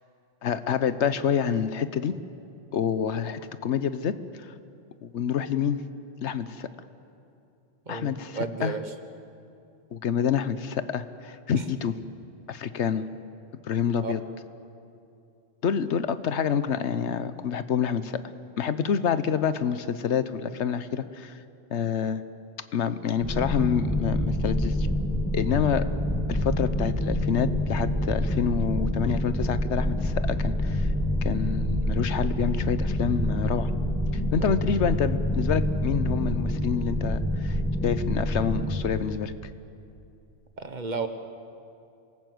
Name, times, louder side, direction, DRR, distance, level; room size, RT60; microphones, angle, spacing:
voice 1, 0.4-2.1 2.7-4.1 4.4-4.5 5.0-5.8 6.2-6.7 7.9-8.7 9.9-12.0 12.5-13.1 13.7-14.2 15.6-18.2 18.6-21.4 21.7-22.2 22.7-24.9 25.3-25.9 26.3-30.9 31.2-33.7 34.1-39.3, left 7 dB, 90° left, 13 dB, 1.2 m, -27 dB
voice 2, 7.9-8.8 14.0-14.1 40.6-41.1, right 4 dB, 45° right, 8 dB, 1.2 m, -32 dB
sound 1, 23.2-38.7, equal, 5° left, 3.1 m, -27 dB
27.0 x 18.5 x 7.9 m, 2.7 s
omnidirectional pair, 1.1 m